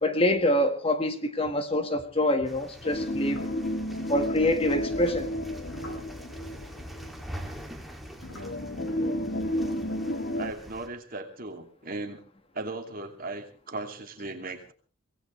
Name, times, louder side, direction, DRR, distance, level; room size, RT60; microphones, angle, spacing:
voice 1, 0.0-3.4 4.1-5.3, left 1 dB, 25° left, 1.7 m, -25 dB
sound 1, 2.4-10.9, equal, ahead, 2.6 m, -43 dB
sound 2, 2.8-7.2 7.6-7.7 8.4-10.5, left 1 dB, 50° left, 1.4 m, -32 dB
sound 3, 3.2-6.4 7.4-8.5, left 1 dB, 75° left, 5.3 m, -46 dB
voice 2, 10.3-12.2 12.5-14.7, right 2 dB, 40° right, 2.7 m, -37 dB
24.5 x 18.0 x 3.3 m
head